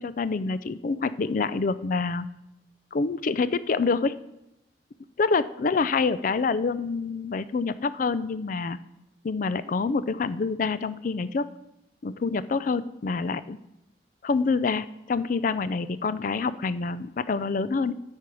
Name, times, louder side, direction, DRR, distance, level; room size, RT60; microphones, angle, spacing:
voice 1, 0.0-2.3 2.9-4.1 5.2-8.8 9.2-11.5 12.0-13.6 14.2-17.9, left 4 dB, 50° left, 15 dB, 0.4 m, -26 dB
13.0 x 4.5 x 4.8 m, 0.87 s
head